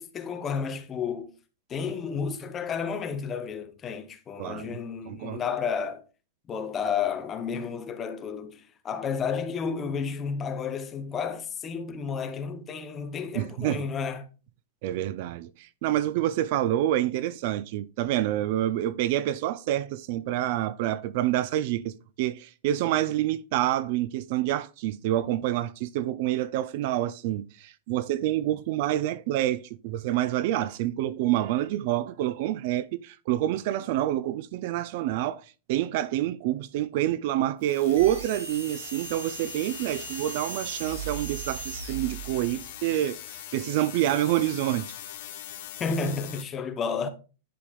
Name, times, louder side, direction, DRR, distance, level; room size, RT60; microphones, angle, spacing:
voice 1, 0.0-1.3 1.7-6.0 6.5-14.3 45.8-47.1, left 6 dB, 15° left, 0.6 m, -31 dB
voice 2, 4.4-4.8 5.1-5.4 13.4-13.9 14.8-35.4 35.7-44.9, right 13 dB, 45° right, 0.3 m, -27 dB
sound 1, 37.6-46.4, left 12 dB, 45° left, 0.9 m, -42 dB
sound 2, 38.0-42.8, right 8 dB, 65° right, 1.1 m, -39 dB
9.9 x 5.1 x 2.3 m
supercardioid pair, 165°, 0 cm